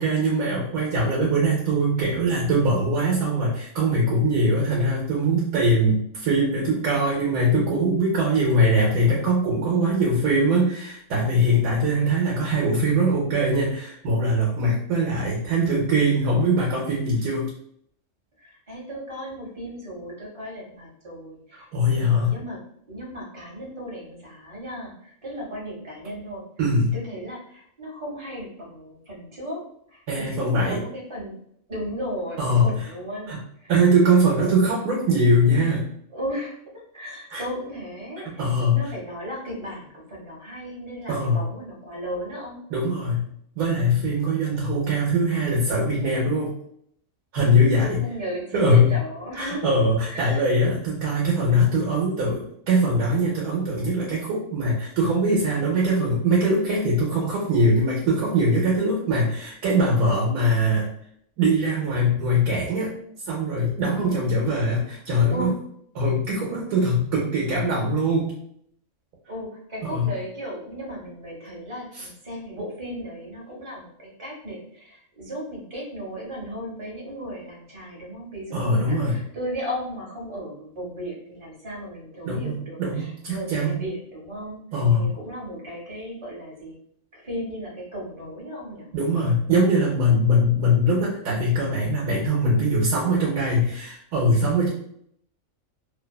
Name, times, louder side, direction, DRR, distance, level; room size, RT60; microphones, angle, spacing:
voice 1, 0.0-17.5 21.7-22.3 26.6-27.0 30.1-30.8 32.4-32.9 33.3-33.4 33.7-35.8 37.3-37.4 38.2-38.8 41.1-41.4 42.7-43.3 43.6-46.5 47.3-48.0 48.5-49.0 49.4-60.9 61.4-63.0 63.3-65.5 66.0-68.3 69.8-70.1 72.0-72.1 78.5-79.2 82.3-83.8 84.7-85.1 88.9-94.7, equal, 80° right, -4 dB, 1.1 m, -22 dB
voice 2, 18.4-22.6 22.9-26.5 26.9-29.6 29.9-31.3 31.7-33.7 34.3-34.4 36.1-36.5 36.9-42.6 47.4-49.8 50.1-50.4 63.9-64.2 65.3-65.6 69.3-86.7 87.1-88.9, equal, 30° right, -3 dB, 0.6 m, -35 dB
2.6 x 2.2 x 2.2 m, 0.67 s
omnidirectional pair, 1.4 m